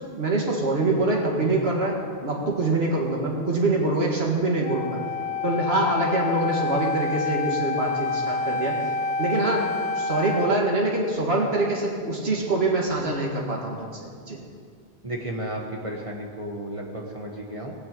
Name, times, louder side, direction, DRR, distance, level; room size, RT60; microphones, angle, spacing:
voice 1, 0.1-5.0 5.4-8.7 9.2-9.7 10.0-13.9 14.3-14.4, right 2 dB, 75° right, -2 dB, 2.1 m, -24 dB
Wind instrument woodwind instrument, 4.6-10.6, left 4 dB, 50° left, 0.5 m, -28 dB
voice 2, 15.0-17.7, right 1 dB, 30° right, -1 dB, 1.4 m, -33 dB
18.5 x 6.2 x 8.6 m, 2.1 s
omnidirectional pair, 1.0 m